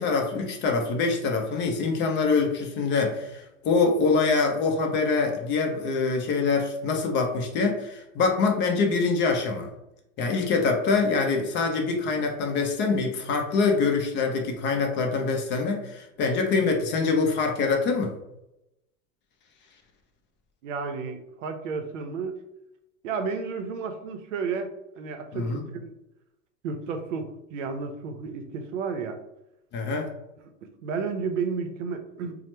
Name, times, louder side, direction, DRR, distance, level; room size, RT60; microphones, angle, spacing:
voice 1, 0.0-9.7 10.2-18.1 25.3-25.6 29.7-30.1, left 4 dB, 30° left, 3 dB, 0.5 m, -24 dB
voice 2, 20.6-22.4 23.0-25.8 26.6-29.2 30.6-32.4, right 5 dB, 80° right, 7 dB, 0.6 m, -32 dB
2.8 x 2.1 x 3.2 m, 0.88 s
supercardioid pair, 125°, 37 cm